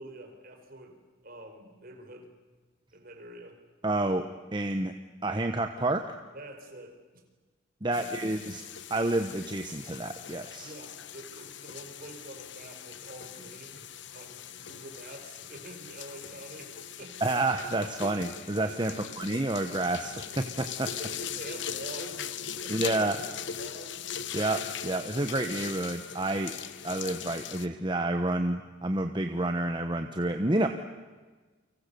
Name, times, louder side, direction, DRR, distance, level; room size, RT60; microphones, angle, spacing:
voice 1, 0.0-2.3 2.9-3.6 6.3-7.2 8.0-8.6 10.6-17.3 18.9-19.1 20.8-24.2, right 1 dB, 45° right, 4 dB, 4.6 m, -47 dB
voice 2, 3.8-4.3 4.5-4.9 5.2-6.0 7.8-8.6 8.9-10.7 17.2-20.9 22.7-23.2 24.3-26.5 26.8-30.7, right 2 dB, 25° right, 6 dB, 1.1 m, -29 dB
sound 1, 7.9-27.7, left 8 dB, 60° left, 1.1 m, -40 dB
30.0 x 25.0 x 6.9 m, 1.3 s
head